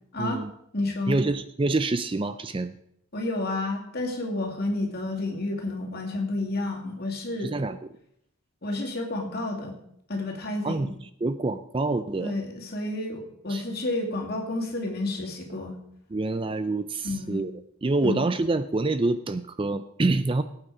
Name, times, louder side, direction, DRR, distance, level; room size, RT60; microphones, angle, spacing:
voice 1, 0.2-0.5 1.1-2.7 7.4-7.8 10.6-10.9 11.2-12.3 13.5-13.6 16.1-17.5 17.8-20.4, right 2 dB, 25° right, 12 dB, 0.4 m, -26 dB
voice 2, 0.7-1.2 3.1-7.5 8.6-9.8 10.1-10.9 12.2-15.8 17.0-17.4 18.0-18.3, left 2 dB, 45° left, 1 dB, 2.5 m, -30 dB
17.5 x 8.8 x 4.9 m, 0.73 s
head